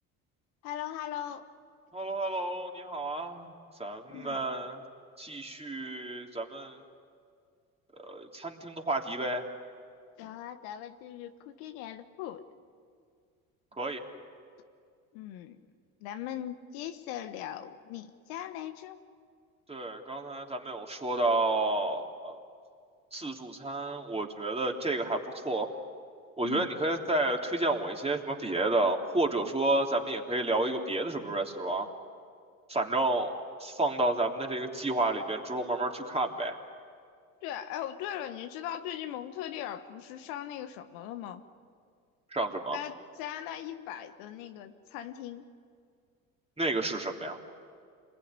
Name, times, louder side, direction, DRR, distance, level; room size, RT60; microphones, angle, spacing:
voice 1, 0.6-1.4 4.1-4.5 10.2-12.5 15.1-15.6 16.0-19.0 26.4-26.7 37.4-41.4 42.7-45.5, left 11 dB, 75° left, 8 dB, 1.4 m, -39 dB
voice 2, 1.9-3.5 3.8-4.8 5.2-6.8 8.0-9.4 13.8-14.0 19.7-22.4 23.1-25.7 26.4-31.9 32.7-33.3 33.6-36.6 42.3-42.8 46.6-47.4, right 2 dB, 15° right, 1 dB, 3.3 m, -30 dB
27.5 x 21.0 x 9.8 m, 2.2 s
hypercardioid pair, 70°, 43 cm